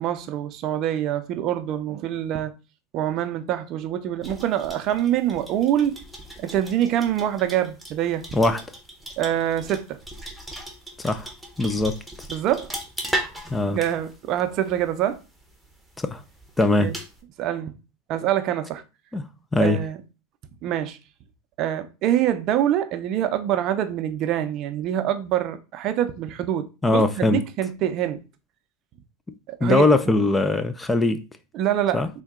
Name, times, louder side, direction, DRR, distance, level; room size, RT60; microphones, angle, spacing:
voice 1, 0.0-2.5 2.9-5.9 6.4-8.2 9.2-10.0 12.3-12.7 13.7-15.2 16.8-16.9 17.4-17.7 18.1-18.8 19.6-20.0 20.6-21.0 21.6-28.2 29.5-29.9 31.5-32.0, right 11 dB, 50° right, 0.5 m, -25 dB
sound 1, 4.2-17.2, right 1 dB, 5° right, 0.8 m, -38 dB
voice 2, 11.6-12.0 13.5-13.8 16.0-16.2 16.6-16.9 19.1-19.3 19.5-19.8 26.8-27.4 29.6-31.2 31.9-32.1, left 2 dB, 15° left, 0.3 m, -21 dB
3.7 x 2.2 x 3.6 m
hypercardioid pair, 105°, 0 cm